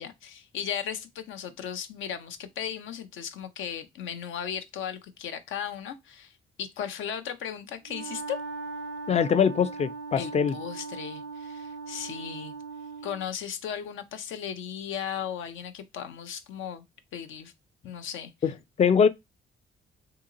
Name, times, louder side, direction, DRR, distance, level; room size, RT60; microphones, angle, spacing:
voice 1, 0.0-8.4 10.2-12.5 13.0-16.8 17.1-17.5 17.8-18.3, left 8 dB, 80° left, 0.6 m, -36 dB
Wind instrument woodwind instrument, 7.8-13.2, right 4 dB, 85° right, 0.7 m, -39 dB
voice 2, 9.1-10.5 18.4-19.1, left 7 dB, 35° left, 0.4 m, -23 dB
2.9 x 2.8 x 3.7 m
cardioid pair, 90°, 20 cm